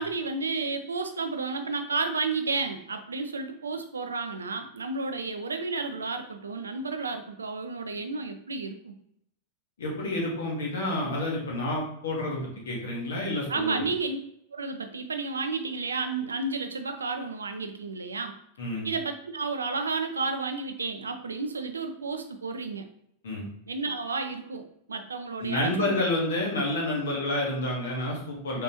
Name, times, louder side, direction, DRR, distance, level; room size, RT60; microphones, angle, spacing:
voice 1, 0.0-9.0 13.5-14.2 14.5-18.4 18.8-22.9 23.7-26.0, right 4 dB, 75° right, 7 dB, 0.5 m, -32 dB
voice 2, 9.8-13.8 18.6-18.9 23.2-23.5 25.4-28.6, left 1 dB, 65° left, -2 dB, 1.4 m, -29 dB
3.9 x 3.5 x 2.9 m, 0.73 s
figure-of-eight pair, 90°, 0 cm